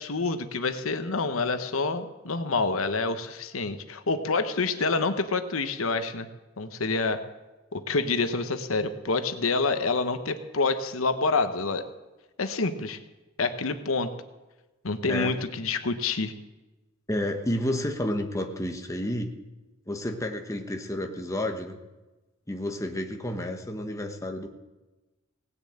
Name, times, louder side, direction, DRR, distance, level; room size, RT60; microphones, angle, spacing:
voice 1, 0.0-6.3 6.6-7.2 7.7-11.9 12.4-13.0 13.4-14.1 14.8-16.3, left 3 dB, 85° left, 9 dB, 1.0 m, -27 dB
voice 2, 15.1-15.4 17.1-19.3 19.9-21.8 22.5-24.5, left 1 dB, 15° left, 4 dB, 1.1 m, -30 dB
18.0 x 6.9 x 8.7 m, 1.1 s
head